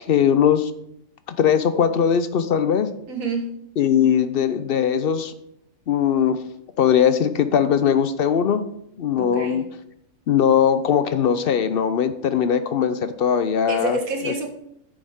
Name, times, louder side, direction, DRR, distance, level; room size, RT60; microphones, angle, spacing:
voice 1, 0.1-0.7 1.3-2.9 3.8-5.3 5.9-6.4 6.8-8.6 9.0-9.7 10.3-14.0 14.2-14.3, left 8 dB, 60° left, 11 dB, 0.6 m, -20 dB
voice 2, 3.1-3.5 9.2-9.6 13.7-14.5, right 3 dB, 80° right, 2 dB, 1.9 m, -27 dB
9.3 x 7.0 x 3.5 m, 0.75 s
omnidirectional pair, 1.4 m